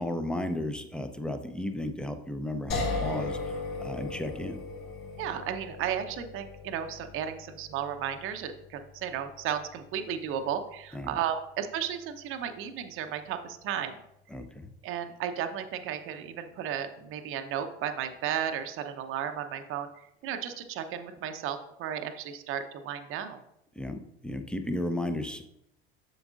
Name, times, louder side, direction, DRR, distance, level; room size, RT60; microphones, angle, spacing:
voice 1, 0.0-4.6 10.9-11.2 14.3-14.7 23.8-25.4, left 1 dB, 5° left, 7 dB, 0.7 m, -34 dB
sound 1, 2.7-15.8, left 3 dB, 40° left, 2.5 m, -40 dB
voice 2, 5.2-14.0 14.8-19.9 20.2-23.4, right 9 dB, 40° right, 7 dB, 0.8 m, -34 dB
7.9 x 6.9 x 2.5 m, 0.80 s
hypercardioid pair, 80°, 32 cm